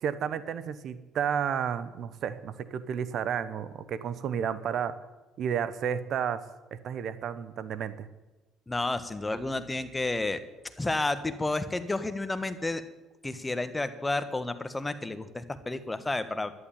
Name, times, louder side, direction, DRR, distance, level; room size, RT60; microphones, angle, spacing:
voice 1, 0.0-5.0 5.4-6.4 6.7-8.1, right 8 dB, 60° right, 15 dB, 1.0 m, -32 dB
voice 2, 8.7-10.4 10.8-12.8 13.2-16.5, left 2 dB, 15° left, 11 dB, 1.4 m, -31 dB
11.0 x 11.0 x 8.9 m, 1.1 s
cardioid pair, 90°, 0 cm